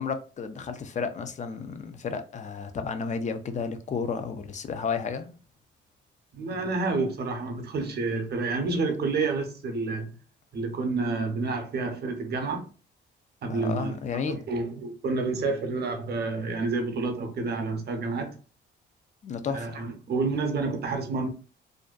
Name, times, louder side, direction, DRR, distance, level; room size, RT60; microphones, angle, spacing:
voice 1, 0.0-5.4 13.5-14.4 19.2-19.8, left 5 dB, 40° left, 0.4 m, -32 dB
voice 2, 6.3-10.1 10.5-12.6 13.4-13.9 14.2-18.4 19.5-21.3, right 3 dB, 55° right, 0.7 m, -29 dB
2.5 x 2.1 x 2.3 m
cardioid pair, 90°, 20 cm